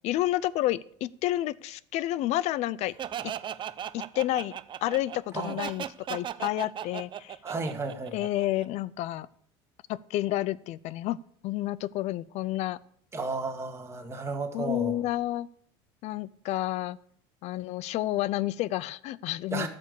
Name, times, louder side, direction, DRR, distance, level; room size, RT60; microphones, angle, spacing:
voice 1, 0.0-2.9 3.2-3.3 3.9-4.5 4.8-7.4 8.1-9.3 9.9-11.2 11.4-12.8 14.5-15.5 16.0-17.0 17.4-19.7, left 15 dB, 60° left, 0.5 m, -30 dB
Laughter, 3.0-8.6, right 10 dB, 40° right, 0.6 m, -37 dB
voice 2, 7.4-8.2 13.1-15.0 19.5-19.7, right 3 dB, 20° right, 2.0 m, -33 dB
12.0 x 7.0 x 6.9 m
supercardioid pair, 100°, 13 cm